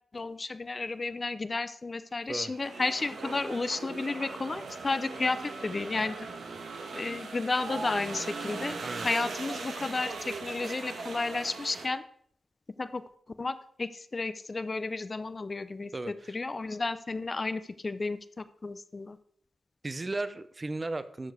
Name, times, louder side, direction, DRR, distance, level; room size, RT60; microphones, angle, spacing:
voice 1, 0.1-6.3 6.9-12.0 12.8-13.0 13.4-15.9 16.3-19.2, left 3 dB, 40° left, 13 dB, 0.6 m, -32 dB
sound 1, 2.3-11.9, right 3 dB, 85° right, 1.3 m, -39 dB
voice 2, 15.9-16.4 19.8-21.3, right 2 dB, 35° right, 12 dB, 0.6 m, -35 dB
13.0 x 4.7 x 4.8 m, 0.67 s
cardioid pair, 70°, 0 cm